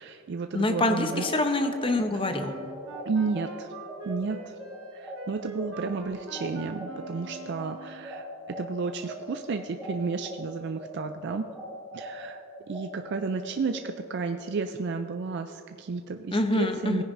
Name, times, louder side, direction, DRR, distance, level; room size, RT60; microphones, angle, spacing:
voice 1, 0.0-1.3 3.0-3.7 4.0-4.6 4.9-11.5 11.9-17.0, right 4 dB, 55° right, 7 dB, 0.4 m, -32 dB
voice 2, 0.5-2.5 16.3-17.0, left 2 dB, 25° left, 6 dB, 0.7 m, -25 dB
sound 1, 1.1-10.4 10.7-13.8, equal, ahead, 2.7 m, -41 dB
Wind instrument woodwind instrument, 2.3-8.2, right 3 dB, 85° right, 1.3 m, -44 dB
17.0 x 10.0 x 2.6 m, 2.4 s
head